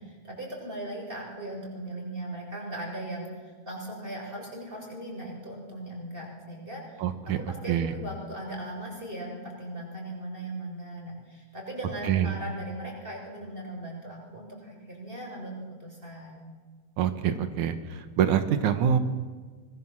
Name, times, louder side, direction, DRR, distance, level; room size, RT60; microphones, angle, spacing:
voice 1, 0.0-7.0 7.4-15.5 15.8-16.5, right 1 dB, 15° right, 0 dB, 7.3 m, -38 dB
voice 2, 7.0-7.4 7.7-7.9 12.0-12.3 17.0-19.0, right 9 dB, 85° right, 9 dB, 2.7 m, -25 dB
25.5 x 22.5 x 7.5 m, 1.5 s
omnidirectional pair, 3.3 m